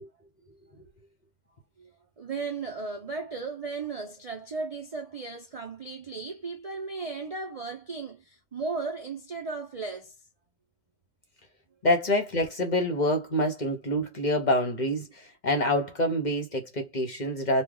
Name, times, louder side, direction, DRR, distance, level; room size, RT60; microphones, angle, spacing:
voice 1, 2.2-10.1, right 4 dB, 45° right, 0.5 m, -35 dB
voice 2, 11.8-17.6, left 1 dB, 40° left, 0.8 m, -26 dB
3.2 x 2.3 x 3.7 m
omnidirectional pair, 1.4 m